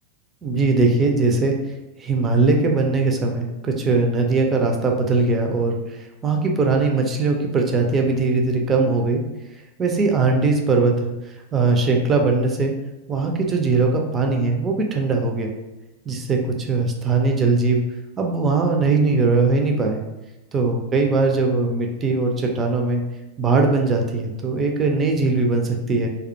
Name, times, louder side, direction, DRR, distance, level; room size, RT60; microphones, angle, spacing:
voice 1, 0.4-1.6 2.0-9.2 9.8-11.1 11.5-12.7 13.1-15.5 16.1-17.8 18.2-20.0 20.5-23.0 23.4-26.1, right 3 dB, 20° right, 2 dB, 0.4 m, -20 dB
2.3 x 2.1 x 2.5 m, 1.1 s
figure-of-eight pair, 90°, 0 cm